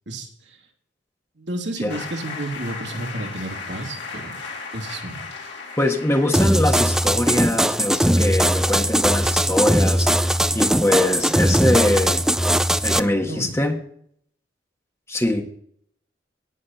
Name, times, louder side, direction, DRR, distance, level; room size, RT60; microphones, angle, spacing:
voice 1, 0.1-0.6 1.4-4.4 4.7-5.2 13.3-13.6, right 1 dB, 70° right, 1 dB, 2.9 m, -31 dB
sound 1, 1.9-6.9, left 4 dB, 70° left, 3.6 m, -36 dB
voice 2, 5.8-12.3 12.8-13.8 15.1-15.4, left 1 dB, 15° left, 3 dB, 1.4 m, -23 dB
sound 2, 6.3-13.0, right 1 dB, 5° right, 0.4 m, -19 dB
18.5 x 6.6 x 4.2 m, 0.64 s
head